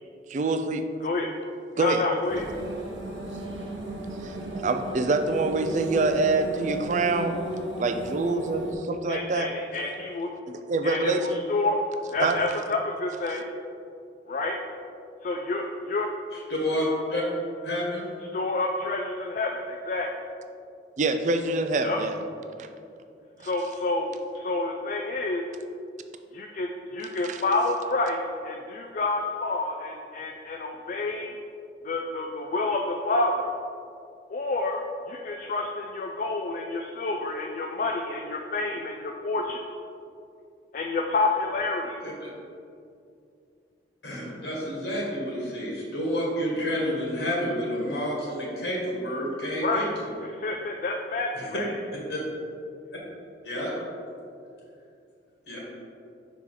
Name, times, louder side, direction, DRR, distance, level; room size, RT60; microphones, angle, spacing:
voice 1, 0.3-0.8 1.8-2.1 4.2-7.4 7.8-9.5 10.5-11.4 12.2-12.4 21.0-22.2 27.2-27.4, right 3 dB, 40° right, 7 dB, 0.4 m, -25 dB
voice 2, 1.8-2.5 9.1-10.3 10.8-11.8 12.1-13.5 14.3-14.6 15.2-16.1 18.3-20.1 21.8-22.0 23.4-25.4 26.3-31.3 31.8-33.5 34.3-34.8 35.1-39.6 40.7-42.0 49.6-49.9 50.3-51.7, left 2 dB, 45° left, 2 dB, 0.3 m, -28 dB
sound 1, 2.3-8.7, right 1 dB, 85° right, 0.9 m, -35 dB
voice 3, 16.3-17.2 17.6-18.0 42.0-42.3 44.0-49.8 51.3-51.5 52.1-52.2 53.4-53.7 55.5-55.6, equal, 65° left, -4 dB, 1.5 m, -29 dB
5.8 x 4.7 x 3.8 m, 2.5 s
head